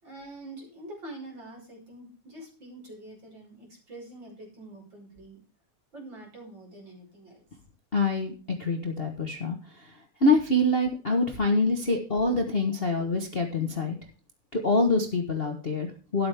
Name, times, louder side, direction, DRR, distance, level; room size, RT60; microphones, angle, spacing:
voice 1, 0.0-5.4 5.9-7.4 12.4-12.8 13.7-13.9, right 1 dB, 35° right, -1 dB, 5.9 m, -45 dB
voice 2, 7.9-8.3 8.6-9.6 10.2-13.9 14.5-16.3, left 2 dB, 65° left, 3 dB, 0.5 m, -25 dB
12.5 x 11.0 x 3.5 m, 0.37 s
omnidirectional pair, 3.3 m